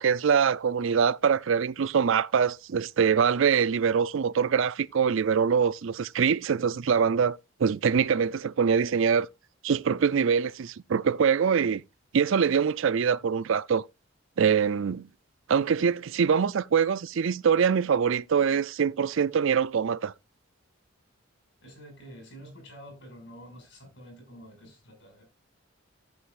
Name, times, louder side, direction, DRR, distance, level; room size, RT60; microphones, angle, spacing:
voice 1, 0.0-9.3 9.6-11.8 12.1-13.8 14.4-15.1 15.5-20.1, right 6 dB, 65° right, 0.4 m, -24 dB
voice 2, 21.6-25.2, equal, 60° left, 6.2 m, -48 dB
13.5 x 8.0 x 2.5 m
head